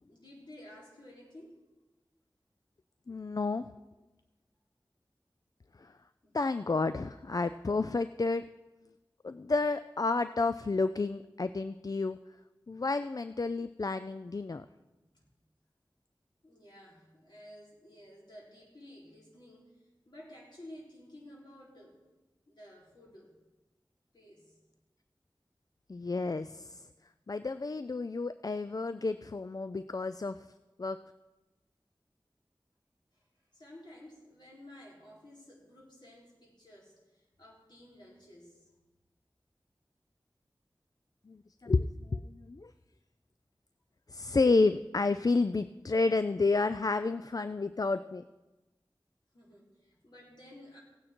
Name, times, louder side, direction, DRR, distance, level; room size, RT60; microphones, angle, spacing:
voice 1, 0.0-1.6 6.2-6.4 15.1-15.3 16.4-22.0 22.5-23.4 24.1-24.6 33.1-38.7 49.3-50.8, left 1 dB, 65° left, -5 dB, 4.1 m, -53 dB
voice 2, 3.1-3.7 5.8-5.9 6.3-8.4 9.2-12.2 12.7-14.6 25.9-26.9 27.3-30.4 30.8-31.0 41.3-42.7 44.1-48.2, left 3 dB, 50° left, 12 dB, 0.4 m, -30 dB
16.5 x 9.0 x 4.4 m, 1.1 s
wide cardioid pair, 50°, 8 cm